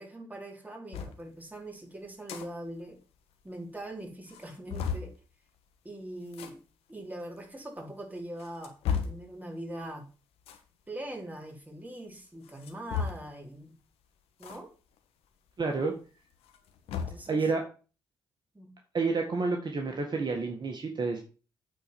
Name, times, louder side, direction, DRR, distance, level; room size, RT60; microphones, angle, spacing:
voice 1, 0.0-3.0 3.4-5.1 5.8-6.6 6.9-10.1 10.9-13.7 14.4-14.7 16.9-17.5 18.5-18.7, right 1 dB, 15° right, 1 dB, 3.9 m, -42 dB
sound 1, 0.9-1.2 2.1-2.5 2.8-2.9 3.1-3.2 3.8-3.9 4.3-5.1 6.3-6.5 7.4-7.5 8.2-9.3 10.4-10.7 12.4-13.4 14.4-14.6 15.0-15.1 16.3-17.3, left 7 dB, 75° left, 1.4 m, -34 dB
voice 2, 15.6-15.9 17.3-17.6 18.9-21.2, right 4 dB, 45° right, 2 dB, 1.8 m, -29 dB
9.0 x 4.5 x 7.0 m, 0.36 s
hypercardioid pair, 45°, 10 cm